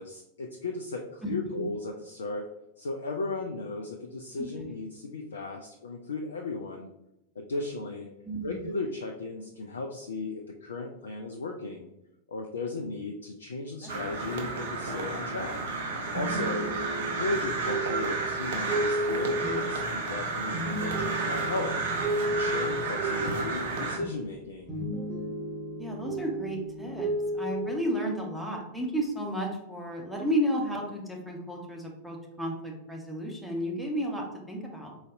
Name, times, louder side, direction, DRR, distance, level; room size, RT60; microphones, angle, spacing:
voice 1, 0.0-2.5 2.8-6.9 7.4-8.1 8.4-11.9 12.3-15.6 16.1-16.7 17.0-21.7 22.3-24.8, left 3 dB, 70° left, 3 dB, 0.4 m, -35 dB
voice 2, 1.2-1.7 4.4-4.7 8.2-8.7 13.8-13.9 19.4-19.6 25.8-34.9, equal, ahead, -1 dB, 0.9 m, -33 dB
Crow, 13.9-24.0, right 3 dB, 60° right, 0.8 m, -32 dB
sound 1, 16.1-24.4 24.7-27.8, right 1 dB, 30° right, 1.4 m, -33 dB
4.0 x 3.9 x 2.5 m, 0.91 s
figure-of-eight pair, 90°, 0 cm